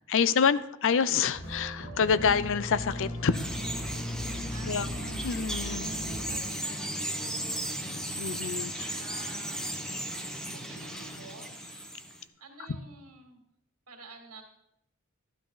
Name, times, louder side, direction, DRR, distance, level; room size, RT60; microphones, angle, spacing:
voice 1, 0.1-3.5 4.7-4.9 5.2-5.9 8.2-9.0, left 6 dB, 60° left, 16 dB, 0.5 m, -27 dB
sound 1, 1.3-6.3, equal, 80° left, 4.8 m, -37 dB
Bird vocalization bird call bird song, 3.3-12.2, right 1 dB, 5° left, 1.1 m, -36 dB
voice 2, 4.3-5.4 6.2-7.6 8.9-9.8 10.5-11.5 12.4-13.4 13.9-14.4, right 3 dB, 90° right, 3 dB, 2.4 m, -49 dB
12.0 x 12.0 x 3.9 m, 0.78 s
head